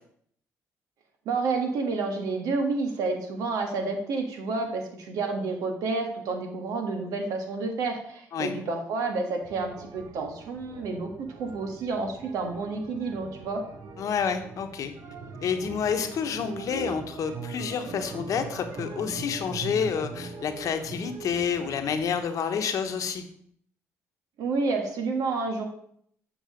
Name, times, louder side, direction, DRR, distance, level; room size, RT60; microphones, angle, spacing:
voice 1, 1.2-11.1 11.4-13.6 24.4-25.6, right 3 dB, 80° right, 4 dB, 1.5 m, -29 dB
sound 1, 9.4-22.0, right 4 dB, 60° right, 1.0 m, -41 dB
voice 2, 14.0-14.9 15.4-23.2, left 7 dB, 65° left, 7 dB, 1.1 m, -29 dB
7.7 x 4.8 x 5.1 m, 0.66 s
supercardioid pair, 70°, 6 cm